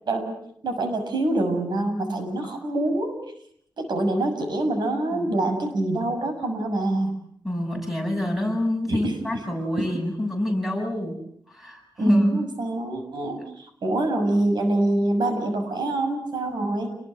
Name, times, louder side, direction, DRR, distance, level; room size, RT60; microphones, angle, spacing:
voice 1, 0.6-3.2 3.8-7.2 8.9-9.1 12.0-16.9, right 1 dB, 80° right, 6 dB, 6.5 m, -25 dB
voice 2, 5.1-5.5 7.4-11.2 11.5-12.4, left 1 dB, 5° right, 2 dB, 7.3 m, -27 dB
29.5 x 20.5 x 7.7 m, 0.68 s
wide cardioid pair, 160°, 7 cm